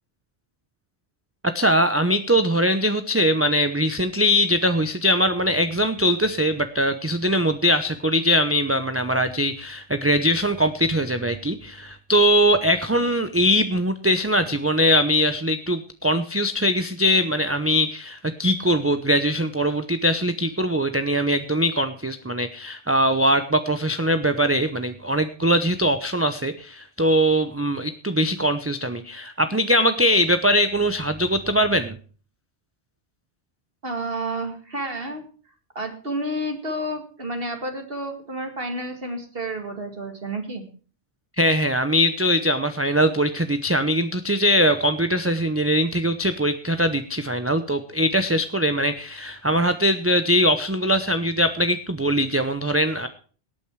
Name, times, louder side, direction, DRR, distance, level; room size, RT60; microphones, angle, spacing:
voice 1, 1.5-32.0 41.4-53.1, equal, 15° right, 9 dB, 0.7 m, -21 dB
voice 2, 33.8-35.2 35.8-40.6, right 1 dB, 55° right, 5 dB, 2.4 m, -30 dB
18.0 x 9.1 x 4.7 m, 0.40 s
omnidirectional pair, 1.1 m